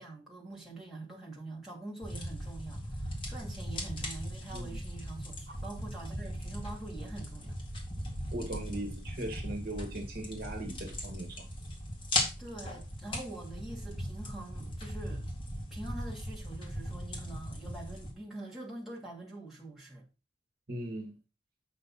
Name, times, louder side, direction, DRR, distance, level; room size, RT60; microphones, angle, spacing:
voice 1, 0.0-7.6 12.4-15.3 15.7-20.1, right 2 dB, ahead, 2.4 m, -45 dB
sound 1, 2.0-18.1, left 1 dB, 25° left, 2.3 m, -38 dB
voice 2, 8.3-11.5 20.7-21.1, right 1 dB, 50° right, 1.7 m, -39 dB
8.0 x 5.5 x 4.1 m
head